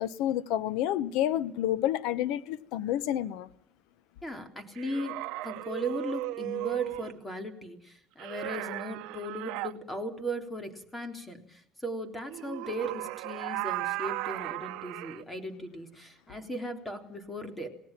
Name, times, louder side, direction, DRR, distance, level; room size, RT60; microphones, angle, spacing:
voice 1, 0.0-3.5, left 12 dB, 85° left, 1.0 m, -29 dB
voice 2, 4.2-5.2 5.4-17.7, equal, 15° left, 3.5 m, -37 dB
sound 1, 4.8-7.2 8.2-9.7 12.3-15.2, right 19 dB, 85° right, 0.8 m, -36 dB
27.5 x 18.5 x 6.0 m
cardioid pair, 120°, 0 cm